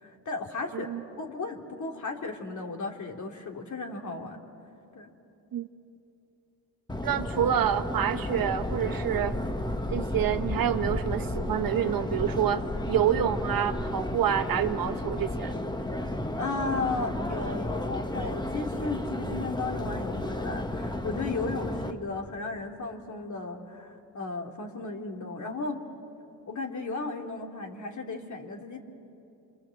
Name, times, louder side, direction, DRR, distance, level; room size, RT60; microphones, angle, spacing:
voice 1, 0.0-0.9 1.2-4.4 4.9-5.1 16.4-25.8 26.5-28.8, left 3 dB, 45° left, 2 dB, 2.9 m, -35 dB
Subway metro underground, 6.9-21.9, left 1 dB, 10° left, 1.4 m, -32 dB
voice 2, 7.0-9.4 9.9-15.5, right 10 dB, 60° right, 9 dB, 1.1 m, -27 dB
28.5 x 24.5 x 7.8 m, 2.8 s
cardioid pair, 85°, 39 cm